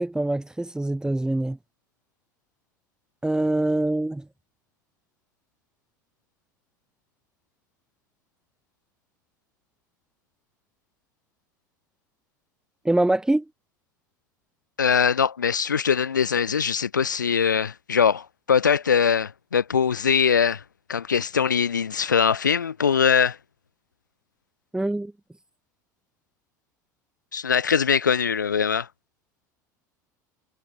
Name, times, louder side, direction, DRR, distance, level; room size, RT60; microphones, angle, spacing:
voice 1, 0.0-1.6 3.2-4.2 12.8-13.4 24.7-25.1, right 1 dB, 5° right, 3.1 m, -24 dB
voice 2, 14.8-20.6 20.9-23.4 27.3-28.9, left 7 dB, 85° left, 1.1 m, -22 dB
figure-of-eight pair, 70°, 10 cm